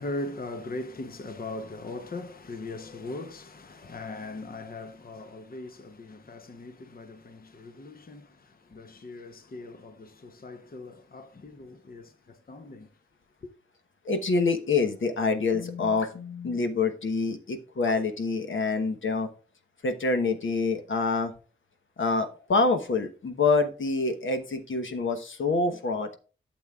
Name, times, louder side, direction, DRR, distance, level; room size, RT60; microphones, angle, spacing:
voice 1, 0.0-12.9 13.4-13.5, left 2 dB, 45° left, 0.8 m, -40 dB
voice 2, 14.0-19.3 19.8-21.3 22.0-26.2, left 4 dB, 75° left, 1.1 m, -26 dB
11.5 x 7.3 x 2.4 m
cardioid pair, 65°, 21 cm